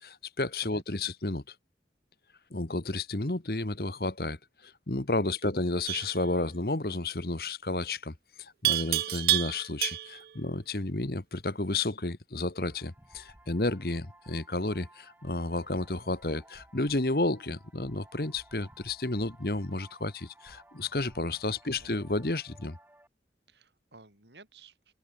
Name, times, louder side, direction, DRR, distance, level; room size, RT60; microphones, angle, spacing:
voice 1, 0.0-1.4 2.5-4.4 4.6-8.1 8.4-22.8, left 2 dB, 55° left, 1.5 m, -31 dB
voice 2, 0.6-1.1 5.4-5.5 21.4-21.9 23.5-24.7, right 3 dB, 80° right, 7.5 m, -55 dB
Livestock farm animals working animals, 5.9-6.2 8.6-10.3, right 15 dB, 55° right, 0.3 m, -28 dB
sound 1, 12.6-23.1, right 1 dB, 10° right, 5.2 m, -57 dB
head